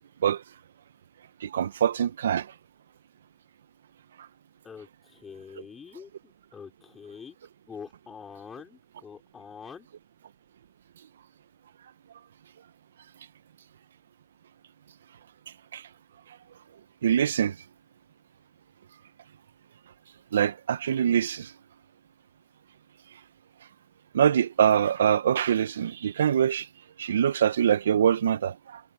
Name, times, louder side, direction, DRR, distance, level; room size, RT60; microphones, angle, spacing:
voice 1, 1.4-2.5 15.7-15.8 17.0-17.5 20.3-21.5 24.1-26.7 27.0-28.8, right 9 dB, 80° right, 1.6 m, -24 dB
voice 2, 4.6-6.1 6.5-7.4 7.7-9.9, left 6 dB, 30° left, 6.6 m, -45 dB
hypercardioid pair, 75°, 0 cm